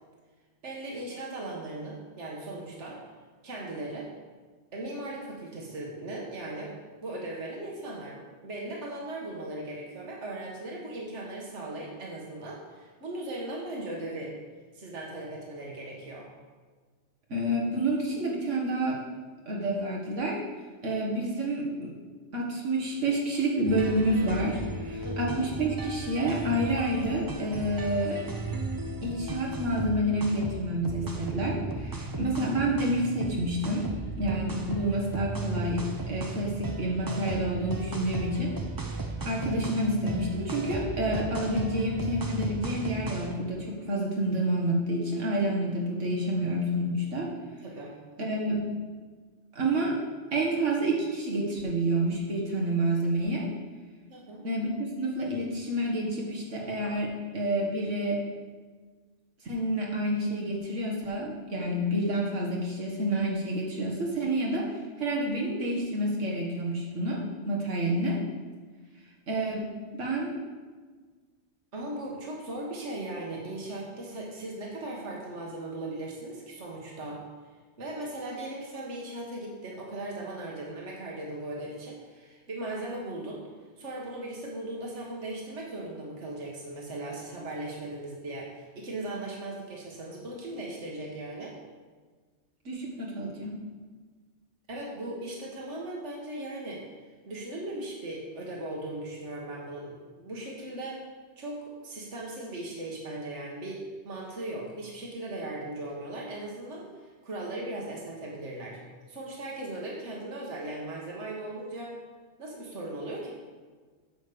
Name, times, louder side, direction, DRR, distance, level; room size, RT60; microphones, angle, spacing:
voice 1, 0.6-3.0 3.4-4.1 4.7-14.3 14.7-16.3 25.0-25.3 47.6-47.9 54.1-54.4 71.7-77.2 77.8-83.4 83.8-91.5 94.7-96.8 97.2-101.0 101.4-108.8 109.1-111.9 112.4-113.3, right 1 dB, 70° right, -2 dB, 1.9 m, -38 dB
voice 2, 17.3-19.0 19.5-20.4 20.8-21.9 22.3-28.2 29.0-33.8 34.2-38.5 39.2-47.3 48.2-48.6 49.5-50.0 50.3-53.5 54.4-58.2 59.4-68.2 69.3-69.6 69.9-70.3 92.7-93.6, right 1 dB, 90° right, -3 dB, 2.0 m, -29 dB
sound 1, 23.7-43.5, right 3 dB, 20° right, 0.6 m, -35 dB
9.0 x 5.3 x 6.8 m, 1.5 s
omnidirectional pair, 1.2 m